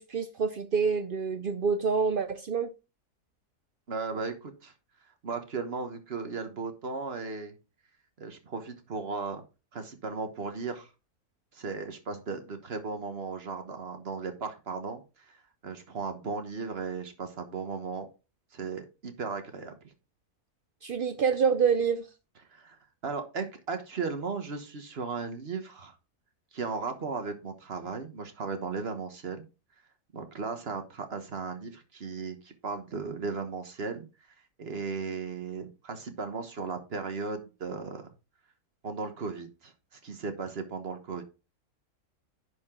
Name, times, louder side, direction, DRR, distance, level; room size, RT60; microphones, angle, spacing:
voice 1, 0.0-2.7 20.8-22.1, right 6 dB, 75° right, 0.5 m, -27 dB
voice 2, 3.9-4.7 5.2-7.5 8.2-9.4 9.7-10.9 11.5-18.1 18.5-19.9 22.5-26.0 26.5-29.5 30.1-34.1 34.6-38.1 38.8-39.7 40.0-41.2, right 4 dB, 45° right, 1.4 m, -36 dB
10.5 x 4.9 x 3.7 m
omnidirectional pair, 1.6 m